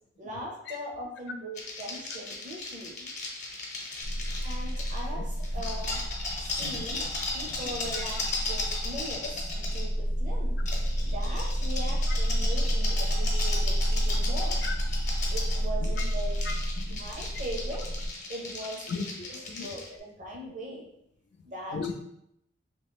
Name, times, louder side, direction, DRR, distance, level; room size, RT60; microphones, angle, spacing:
voice 1, 0.2-3.1 4.4-6.0 6.4-7.0 7.3-9.2 9.5-10.6 11.0-14.6 15.3-16.4 16.9-17.8 18.3-18.9 19.3-20.9 21.4-21.8, right 1 dB, 40° right, -2 dB, 0.6 m, -40 dB
sound 1, 1.6-5.0 5.4-9.8 10.7-19.9, left 2 dB, 40° left, 0.8 m, -36 dB
sound 2, 4.0-18.1, equal, 85° right, 0.7 m, -30 dB
voice 2, 6.6-7.1 7.5-7.6 7.9-8.1 12.1-12.2 14.6-14.7 15.8-16.0 16.5-17.0 18.9-19.7 21.7-21.9, left 5 dB, 65° left, 5 dB, 0.3 m, -37 dB
3.0 x 2.9 x 3.4 m, 0.79 s
head